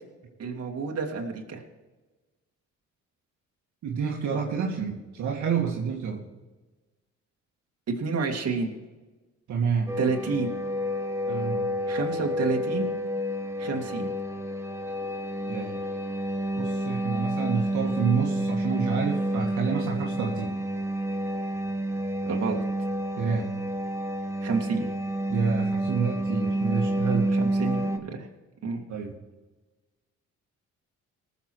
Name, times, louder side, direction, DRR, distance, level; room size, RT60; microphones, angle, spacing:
voice 1, 0.4-1.6 7.9-8.7 10.0-10.5 11.9-12.9 13.6-14.1 22.2-22.6 24.4-24.8 27.3-28.3 28.6-28.8, right 4 dB, 55° right, 1 dB, 2.5 m, -29 dB
voice 2, 3.8-6.2 9.5-10.0 11.3-11.7 15.5-15.8 16.6-20.6 23.2-23.5 25.3-27.3 28.9-29.1, right 6 dB, 70° right, -1 dB, 2.1 m, -28 dB
sound 1, 9.9-28.0, right 1 dB, 10° right, 1.1 m, -29 dB
19.5 x 7.3 x 4.7 m, 1.2 s
cardioid pair, 90°, 30 cm